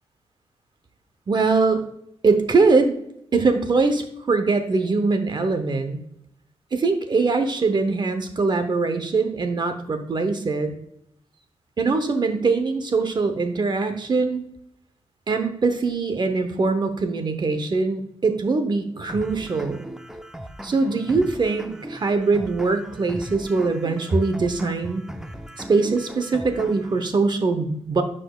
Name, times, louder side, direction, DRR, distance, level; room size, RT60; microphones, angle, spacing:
voice 1, 1.3-1.8 2.2-2.9 3.3-6.0 6.7-10.7 11.8-14.4 15.3-19.8 20.6-25.0 25.6-28.0, right 4 dB, 45° right, 8 dB, 0.8 m, -22 dB
sound 1, 19.1-27.1, right 1 dB, 5° right, 0.5 m, -38 dB
9.7 x 5.1 x 2.3 m, 0.74 s
cardioid pair, 90°, 11 cm